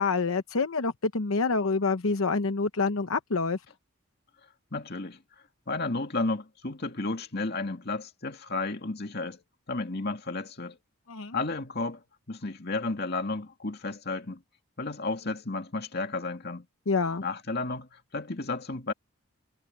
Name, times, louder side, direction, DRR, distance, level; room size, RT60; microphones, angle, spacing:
voice 1, 0.0-3.6 11.1-11.4 16.9-17.2, left 4 dB, 80° left, 0.9 m, -27 dB
voice 2, 4.7-5.2 5.7-9.4 9.7-10.8 11.3-12.0 12.3-14.4 14.8-16.7 17.2-18.9, left 3 dB, 50° left, 2.3 m, -32 dB
head